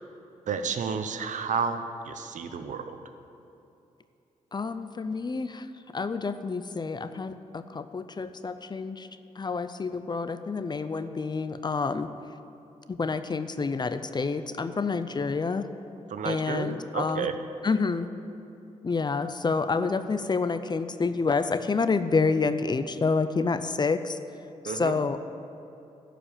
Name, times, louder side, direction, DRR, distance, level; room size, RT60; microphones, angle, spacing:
voice 1, 0.5-3.0 16.1-17.3 24.6-25.0, right 6 dB, 70° right, 9 dB, 0.7 m, -31 dB
voice 2, 4.5-5.6 5.9-9.1 9.4-12.1 12.9-15.6 16.2-17.3 17.6-18.1 18.8-24.2 24.6-25.3, left 4 dB, 35° left, 11 dB, 0.5 m, -28 dB
11.5 x 5.1 x 7.2 m, 2.8 s
cardioid pair, 60°, 13 cm